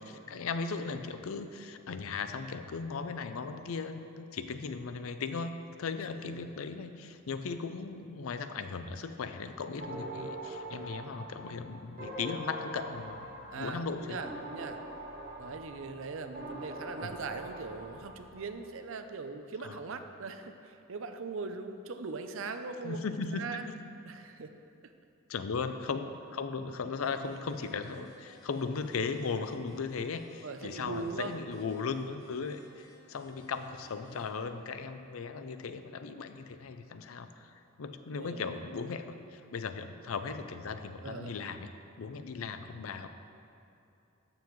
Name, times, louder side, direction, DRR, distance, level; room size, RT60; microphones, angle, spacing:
voice 1, 0.0-14.2 17.0-17.1 19.6-19.8 22.8-23.7 25.3-41.7 42.0-43.1, left 5 dB, 90° left, 9 dB, 0.5 m, -37 dB
sound 1, 9.8-18.5, right 1 dB, 45° right, 1.3 m, -43 dB
voice 2, 13.5-14.8 15.4-23.1 23.3-23.7 24.1-24.5 24.8-24.9 30.4-31.3 38.1-38.6 41.0-41.3, right 4 dB, 70° right, 8 dB, 0.6 m, -40 dB
sound 2, 27.0-34.3, equal, 20° left, 1.5 m, -61 dB
14.0 x 6.9 x 3.1 m, 2.7 s
head